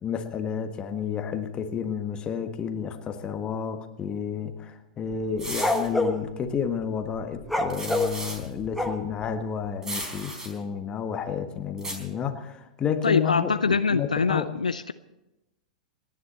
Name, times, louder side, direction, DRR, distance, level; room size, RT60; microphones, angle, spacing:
voice 1, 0.0-14.4, left 7 dB, 25° left, 1.6 m, -31 dB
sound 1, 5.1-6.2 7.4-9.3, left 2 dB, ahead, 1.3 m, -26 dB
sound 2, 5.4-5.9 7.7-8.5 9.8-10.5 11.8-11.9, right 1 dB, 15° right, 4.1 m, -35 dB
voice 2, 13.0-14.9, left 5 dB, 75° left, 0.5 m, -24 dB
29.0 x 10.5 x 4.3 m
figure-of-eight pair, 95°, 4 cm